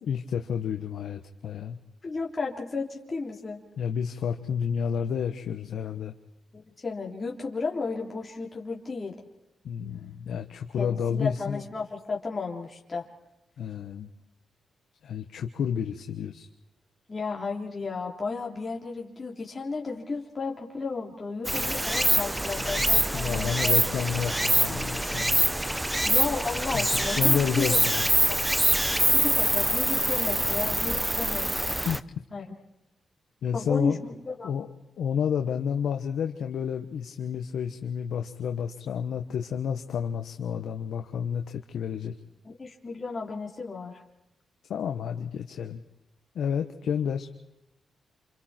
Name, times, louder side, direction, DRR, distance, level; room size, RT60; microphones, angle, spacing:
voice 1, 0.0-1.8 3.8-6.1 9.6-11.6 13.6-14.1 15.0-16.5 22.6-25.6 26.7-26.9 27.2-28.1 31.8-32.0 33.4-34.0 34.4-34.7 35.0-42.1 44.7-45.8 46.3-47.3, left 7 dB, 80° left, 5 dB, 1.3 m, -30 dB
voice 2, 2.0-3.6 6.5-9.1 10.8-13.1 17.1-23.8 26.0-27.9 28.3-28.4 29.1-31.5 32.3-32.4 33.5-34.5 42.4-44.0, left 4 dB, 30° left, -1 dB, 3.7 m, -33 dB
Stream, 21.4-32.0, right 1 dB, 10° right, 0.8 m, -25 dB
28.5 x 28.5 x 4.5 m, 0.92 s
cardioid pair, 90°, 0 cm